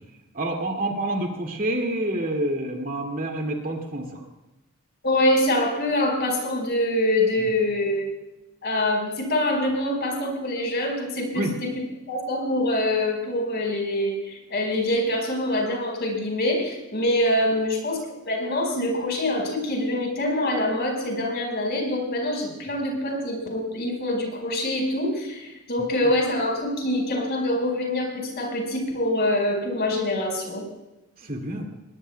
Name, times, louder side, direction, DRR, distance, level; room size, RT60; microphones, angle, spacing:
voice 1, 0.3-4.1 7.4-7.5 11.3-11.5 31.2-31.6, right 1 dB, 40° right, 2 dB, 2.3 m, -27 dB
voice 2, 5.0-8.1 8.6-11.7 12.1-30.6, left 1 dB, 50° left, 1 dB, 4.7 m, -25 dB
20.5 x 20.0 x 2.3 m, 0.99 s
head